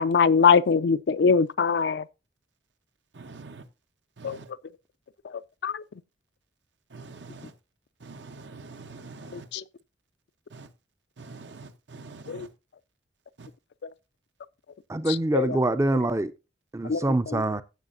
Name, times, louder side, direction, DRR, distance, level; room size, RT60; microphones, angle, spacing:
voice 1, 0.0-2.0 4.2-4.4 5.6-5.8 9.3-9.6 12.3-12.5 15.3-15.6 16.8-17.4, left 5 dB, 65° left, 0.4 m, -22 dB
voice 2, 3.1-3.6 4.2-4.5 6.9-7.5 8.0-9.5 10.5-10.7 11.2-12.5 13.4-13.5, right 3 dB, 70° right, 0.9 m, -44 dB
voice 3, 14.9-16.3 16.7-17.6, right 2 dB, 15° right, 0.4 m, -25 dB
15.5 x 7.2 x 2.6 m
head